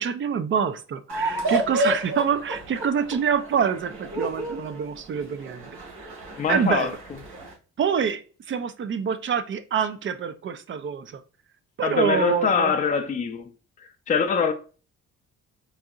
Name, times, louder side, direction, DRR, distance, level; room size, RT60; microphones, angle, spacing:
voice 1, 0.0-5.7 6.5-7.0 7.8-11.2 11.8-12.7, right 7 dB, 40° right, 0.5 m, -26 dB
sound 1, 1.1-7.5, right 1 dB, 70° right, 1.7 m, -30 dB
voice 2, 6.4-6.9 11.8-13.5 13.8-14.5, left 6 dB, 25° left, 0.4 m, -24 dB
4.0 x 2.8 x 2.3 m
cardioid pair, 90°, 30 cm